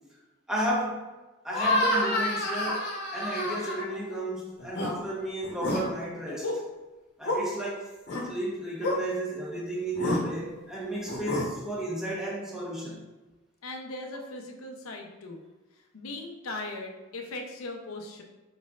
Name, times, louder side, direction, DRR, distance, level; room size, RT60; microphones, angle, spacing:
voice 1, 0.5-1.0 1.4-6.6 7.2-7.9 8.2-13.0, right 1 dB, 5° right, -5 dB, 1.1 m, -33 dB
sound 1, 1.5-4.2 4.6-4.9 5.4-5.8 6.3-6.6 7.2-7.4 8.1-8.2 8.8-9.0 9.9-10.2 11.1-11.5, left 1 dB, 50° left, 1.0 m, -28 dB
voice 2, 13.6-15.4 15.9-18.2, left 2 dB, 75° left, 2 dB, 0.7 m, -39 dB
5.0 x 4.2 x 2.4 m, 1.1 s
head